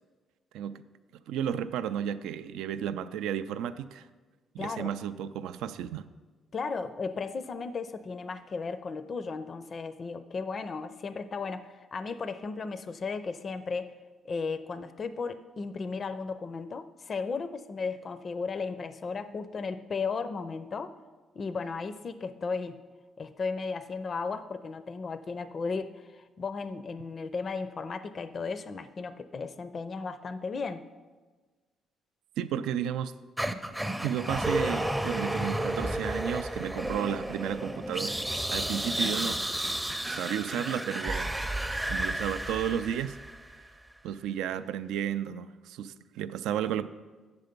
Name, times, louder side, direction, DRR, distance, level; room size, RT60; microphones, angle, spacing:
voice 1, 1.3-4.1 4.5-6.1 32.4-33.1 34.0-38.2 38.5-39.5 40.1-41.3 41.9-43.2 44.0-46.9, right 9 dB, 90° right, 12 dB, 0.3 m, -33 dB
voice 2, 4.6-4.9 6.5-13.9 14.2-20.9 21.4-22.8 23.2-30.8, left 4 dB, 45° left, 12 dB, 0.4 m, -35 dB
sound 1, 33.4-43.5, right 1 dB, 10° right, 0.5 m, -32 dB
8.2 x 6.7 x 5.1 m, 1.3 s
cardioid pair, 90°, 0 cm